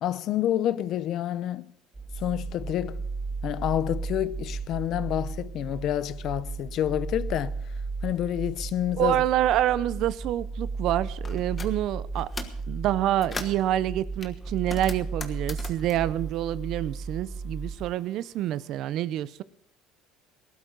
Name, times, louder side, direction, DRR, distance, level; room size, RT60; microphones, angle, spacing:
voice 1, 0.0-1.7 2.2-3.0 3.4-7.5 8.0-9.2, left 11 dB, 55° left, 0.7 m, -28 dB
sound 1, 1.9-17.9, right 4 dB, 20° right, 2.4 m, -35 dB
voice 2, 9.0-12.3 12.7-19.4, right 13 dB, 60° right, 0.6 m, -27 dB
sound 2, 11.2-11.7 12.1-12.6 13.0-13.7 14.2-17.1 17.4-18.5, left 4 dB, 20° left, 1.3 m, -40 dB
18.5 x 12.0 x 3.9 m
cardioid pair, 125°, 0 cm